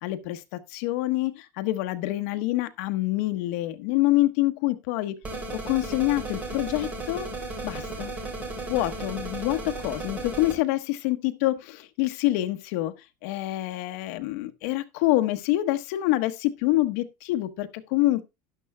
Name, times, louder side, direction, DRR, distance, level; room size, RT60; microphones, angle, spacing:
voice 1, 0.0-5.1 5.5-7.3 7.6-8.1 8.7-12.9 13.2-18.2, left 17 dB, 60° left, 1.2 m, -26 dB
sound 1, 5.2-10.5, right 2 dB, 15° right, 3.1 m, -35 dB
12.5 x 10.5 x 2.2 m
cardioid pair, 180°, 9 cm